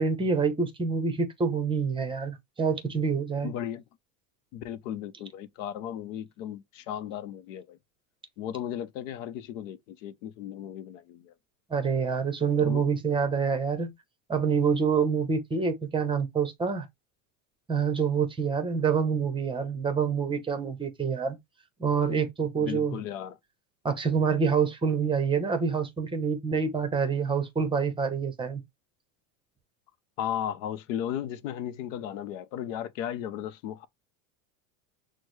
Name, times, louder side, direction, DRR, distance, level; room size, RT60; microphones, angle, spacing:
voice 1, 0.0-3.5 11.7-13.9 14.3-16.9 17.7-21.4 21.8-23.0 23.8-28.6, right 6 dB, 15° right, 0.8 m, -27 dB
voice 2, 3.4-3.8 4.5-7.8 8.4-11.3 12.6-12.8 22.6-23.4 30.2-33.9, left 10 dB, 75° left, 0.7 m, -35 dB
6.2 x 2.1 x 3.1 m
supercardioid pair, 145°, 39 cm